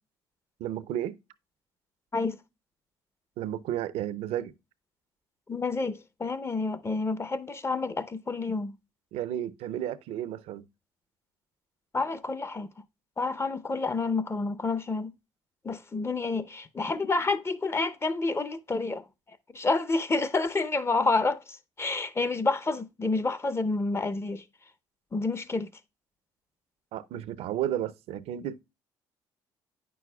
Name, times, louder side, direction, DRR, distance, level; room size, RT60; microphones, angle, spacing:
voice 1, 0.6-1.2 3.4-4.5 9.1-10.7 26.9-28.6, right 11 dB, 75° right, 0.5 m, -32 dB
voice 2, 5.5-8.7 11.9-12.7 13.2-15.1 15.6-19.0 19.5-21.4 21.8-24.4 25.1-25.7, left 3 dB, 25° left, 0.7 m, -29 dB
8.9 x 6.2 x 2.3 m
supercardioid pair, 75°, 11 cm